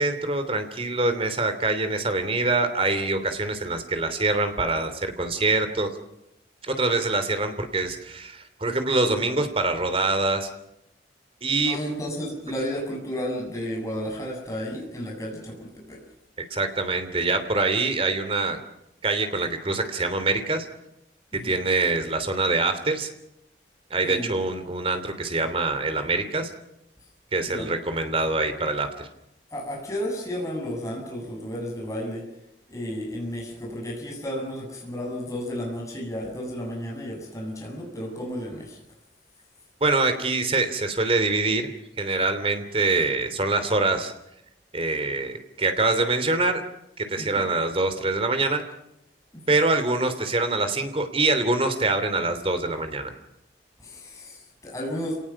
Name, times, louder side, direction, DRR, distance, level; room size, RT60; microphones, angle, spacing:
voice 1, 0.0-5.9 6.6-10.5 11.4-11.8 16.5-18.6 19.0-20.6 21.3-23.1 23.9-26.5 27.3-29.1 39.8-41.7 42.0-44.1 44.7-46.6 47.0-48.6 49.5-53.1, right 3 dB, 30° right, 9 dB, 3.0 m, -24 dB
voice 2, 11.6-16.0 21.3-21.6 24.0-24.3 27.5-27.7 29.5-32.3 32.7-38.8 47.2-47.5 53.8-55.2, equal, 20° left, -1 dB, 7.5 m, -33 dB
29.5 x 19.0 x 6.0 m, 0.82 s
head